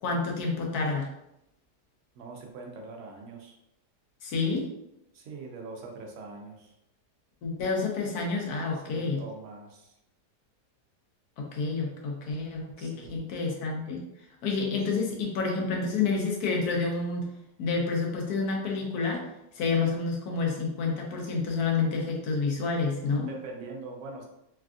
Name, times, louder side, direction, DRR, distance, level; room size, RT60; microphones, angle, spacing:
voice 1, 0.0-1.1 4.2-4.7 7.4-9.2 11.4-14.0 14.4-17.3 17.6-19.3 19.5-23.3, left 4 dB, 70° left, 0 dB, 1.2 m, -29 dB
voice 2, 2.1-3.6 5.1-6.7 8.7-9.9 12.8-13.2 14.9-15.0 23.2-24.3, right 3 dB, 65° right, 1 dB, 0.8 m, -43 dB
3.4 x 2.4 x 2.3 m, 0.85 s
omnidirectional pair, 1.7 m